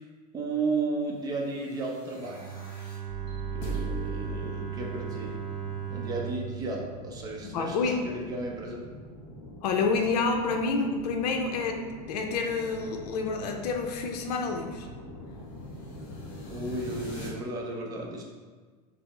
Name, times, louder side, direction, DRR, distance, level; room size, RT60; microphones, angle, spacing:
voice 1, 0.3-2.4 3.5-5.4 5.9-8.8 16.5-18.2, right 3 dB, 20° right, 0 dB, 0.5 m, -33 dB
sound 1, 1.5-17.3, right 1 dB, 55° left, 1.2 m, -42 dB
Bowed string instrument, 2.2-8.1, right 9 dB, 60° right, 0.8 m, -38 dB
voice 2, 7.4-8.1 9.6-14.9, left 4 dB, 80° left, 4 dB, 0.5 m, -28 dB
5.5 x 2.0 x 3.0 m, 1.5 s
supercardioid pair, 150°, 20 cm